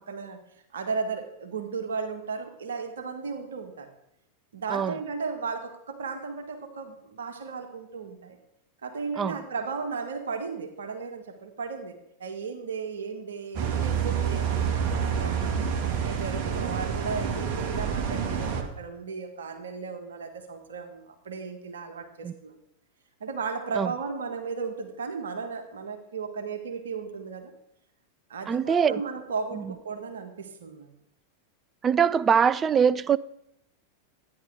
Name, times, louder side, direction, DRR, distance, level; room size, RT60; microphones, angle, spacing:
voice 1, 0.1-0.4 0.7-3.9 4.5-8.4 8.8-15.6 16.0-22.5 23.2-27.5 28.3-30.9, right 5 dB, 65° right, 1.6 m, -35 dB
sound 1, 13.5-18.6, right 7 dB, 40° right, 1.8 m, -28 dB
voice 2, 28.5-29.0 31.8-33.2, right 7 dB, 20° right, 0.4 m, -22 dB
13.0 x 9.9 x 4.9 m
figure-of-eight pair, 90°, 0 cm